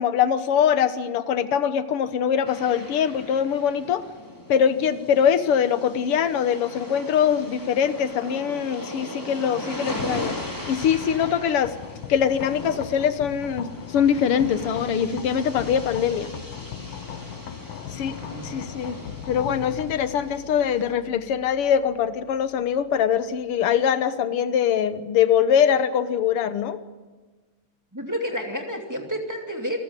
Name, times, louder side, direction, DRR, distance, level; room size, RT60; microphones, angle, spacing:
voice 1, 0.0-4.0 4.5-10.4 10.7-11.8 12.1-16.3 17.9-18.2 18.4-19.0 19.3-26.8, left 8 dB, 90° left, 12 dB, 2.1 m, -23 dB
sound 1, 2.5-20.9, left 1 dB, 10° left, 3.3 m, -38 dB
sound 2, 10.0-23.8, left 10 dB, 70° left, 1.6 m, -40 dB
voice 2, 27.9-29.8, equal, 10° right, 2 dB, 2.5 m, -30 dB
27.5 x 14.5 x 9.8 m, 1.3 s
omnidirectional pair, 2.4 m